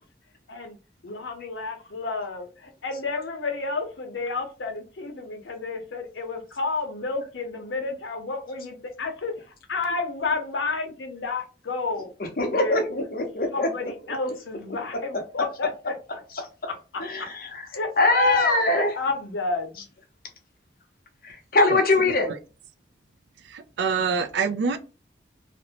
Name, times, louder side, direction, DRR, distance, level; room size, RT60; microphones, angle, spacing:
voice 1, 1.0-9.3 9.7-12.1 12.5-12.8 13.5-15.9 16.7-16.8 17.2-17.3 17.7-19.8, left 3 dB, 90° left, 0.7 m, -30 dB
voice 2, 12.2-14.2 15.1-15.2 16.3-16.4 17.0-17.7 18.0-18.9 21.2-22.4, left 2 dB, 50° left, 0.7 m, -23 dB
voice 3, 23.4-24.8, right 5 dB, 75° right, 0.4 m, -26 dB
2.5 x 2.0 x 2.8 m
head